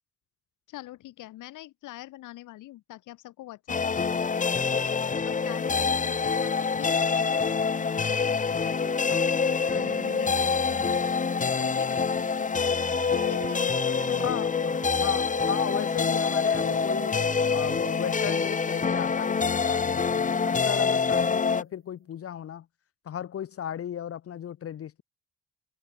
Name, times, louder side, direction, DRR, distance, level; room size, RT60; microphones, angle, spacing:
voice 1, 0.7-5.0 5.2-8.2 8.5-11.1 11.4-12.6 13.3-14.4, left 16 dB, 90° left, 5.4 m, -44 dB
sound 1, 3.7-21.6, left 5 dB, 25° left, 0.9 m, -26 dB
sound 2, 8.7-21.4, right 7 dB, 40° right, 1.8 m, -44 dB
voice 2, 14.2-17.2 17.5-22.7 23.0-25.0, left 9 dB, 50° left, 0.9 m, -35 dB
cardioid pair, 90°, 30 cm